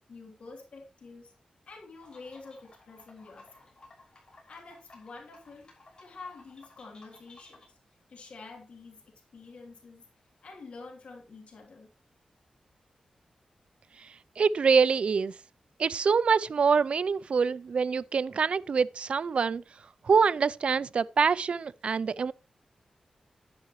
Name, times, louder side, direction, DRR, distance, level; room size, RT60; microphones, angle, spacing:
voice 1, 0.0-1.3 1.7-3.7 4.5-5.7 6.0-7.8 8.1-10.1 10.4-11.9, left 3 dB, 70° left, 3.1 m, -48 dB
sound 1, 2.0-7.7, left 2 dB, 40° left, 5.9 m, -57 dB
voice 2, 14.0-15.3 15.8-19.6 20.0-22.3, right 5 dB, 60° right, 0.4 m, -25 dB
10.5 x 10.5 x 3.1 m
wide cardioid pair, 110°, 2 cm